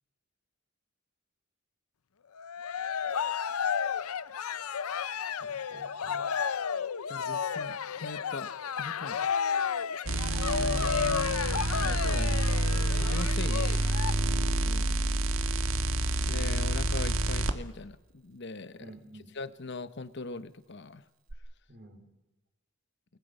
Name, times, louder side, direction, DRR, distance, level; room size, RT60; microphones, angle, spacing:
Cheering, 2.4-14.1, left 7 dB, 85° left, 0.6 m, -32 dB
voice 1, 5.4-6.3 14.6-15.1 18.8-19.3 21.7-22.1, right 1 dB, 50° right, 2 dB, 4.5 m, -50 dB
voice 2, 7.1-9.3 10.6-11.3 11.8-12.5 12.9-13.8 16.2-18.9 19.3-21.0, left 3 dB, 55° left, 13 dB, 1.0 m, -40 dB
sound 1, 10.1-17.5 21.3-21.4, right 2 dB, 70° right, 1.7 m, -28 dB
30.0 x 20.5 x 5.5 m, 1.1 s
head